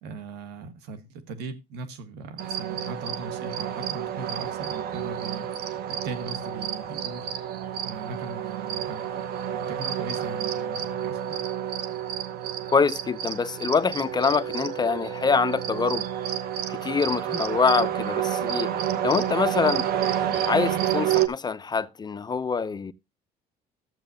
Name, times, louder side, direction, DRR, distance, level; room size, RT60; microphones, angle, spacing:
voice 1, 0.0-7.3 7.8-9.2 9.5-11.4, right 3 dB, 90° right, 1.5 m, -39 dB
sound 1, 2.4-21.3, right 10 dB, 65° right, 1.0 m, -29 dB
voice 2, 12.7-16.0 16.7-18.7 19.0-19.9 20.4-22.9, left 5 dB, 25° left, 0.6 m, -25 dB
12.5 x 7.5 x 2.7 m
cardioid pair, 110°, 17 cm